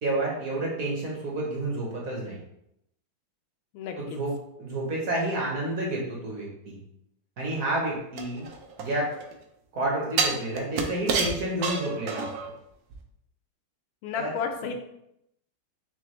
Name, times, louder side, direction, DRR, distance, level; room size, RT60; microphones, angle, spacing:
voice 1, 0.0-2.4 4.0-6.8 7.4-8.5 8.8-9.1 9.7-12.3 14.1-14.4, right 1 dB, 55° right, -3 dB, 1.1 m, -30 dB
voice 2, 3.7-4.2 14.0-14.8, left 6 dB, 85° left, 5 dB, 1.4 m, -32 dB
sound 1, 8.2-9.3 10.2-12.5 12.9-13.0, right 5 dB, 75° right, 0.9 m, -29 dB
6.1 x 2.2 x 3.0 m, 0.81 s
omnidirectional pair, 2.2 m